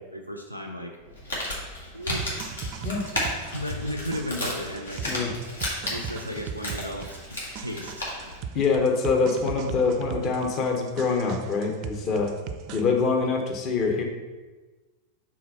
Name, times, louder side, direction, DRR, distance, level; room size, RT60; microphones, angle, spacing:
voice 1, 0.1-1.0 1.9-2.3 3.0-3.2 3.5-5.0 5.9-8.1, equal, 90° left, 2 dB, 0.5 m, -34 dB
Crumpling crinkling, 1.0-8.4, left 1 dB, 75° left, 1.6 m, -34 dB
sound 1, 2.2-12.8, right 7 dB, 40° right, 0.4 m, -39 dB
voice 2, 5.0-5.4 8.5-12.3 12.7-14.0, left 4 dB, 35° left, 2 dB, 1.0 m, -24 dB
4.6 x 4.1 x 5.5 m, 1.2 s
figure-of-eight pair, 90°, 0 cm